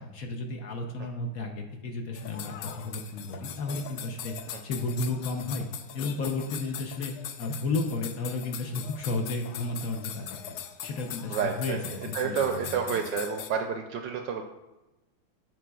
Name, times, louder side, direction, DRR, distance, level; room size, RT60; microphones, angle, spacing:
voice 1, 0.0-4.3 4.6-5.7 5.9-7.1 7.4-10.3 10.8-12.7, left 2 dB, 65° left, 2 dB, 0.8 m, -33 dB
Kirtana in Hindi, 2.1-13.5, left 10 dB, 85° left, 1.4 m, -41 dB
voice 2, 11.3-14.4, right 6 dB, 75° right, 4 dB, 1.1 m, -30 dB
13.5 x 4.7 x 2.3 m, 1.0 s
omnidirectional pair, 2.3 m